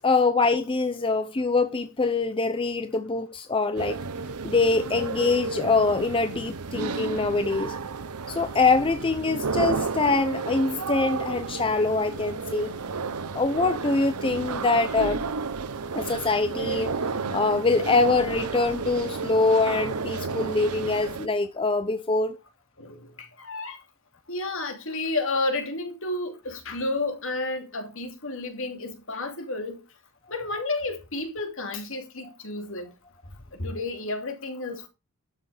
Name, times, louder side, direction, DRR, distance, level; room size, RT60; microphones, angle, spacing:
voice 1, 0.0-4.0 4.4-7.7 8.3-12.7 13.3-15.3 15.9-16.9 17.3-22.4, left 3 dB, 25° left, 0.7 m, -24 dB
sound 1, 3.8-21.3, right 4 dB, 90° right, 0.9 m, -32 dB
voice 2, 22.8-23.8 24.3-29.8 30.3-32.9 33.5-34.9, left 2 dB, 60° left, 2.8 m, -31 dB
12.5 x 6.6 x 5.0 m
head